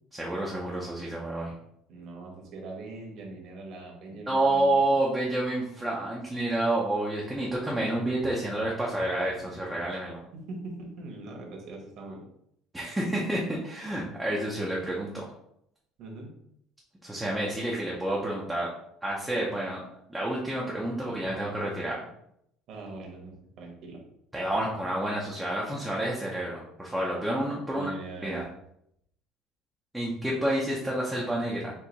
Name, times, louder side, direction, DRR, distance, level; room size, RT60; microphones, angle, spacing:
voice 1, 0.1-1.5 4.3-10.2 12.7-15.2 17.0-18.7 19.0-19.8 20.1-22.0 24.3-27.9 28.2-28.5 29.9-31.7, right 1 dB, 5° right, -4 dB, 0.6 m, -29 dB
voice 2, 1.9-4.8 10.3-12.2 16.0-16.3 22.7-24.0 27.7-28.4, right 2 dB, 50° right, 0 dB, 1.2 m, -41 dB
4.5 x 2.7 x 4.0 m, 0.75 s
cardioid pair, 165°, 0 cm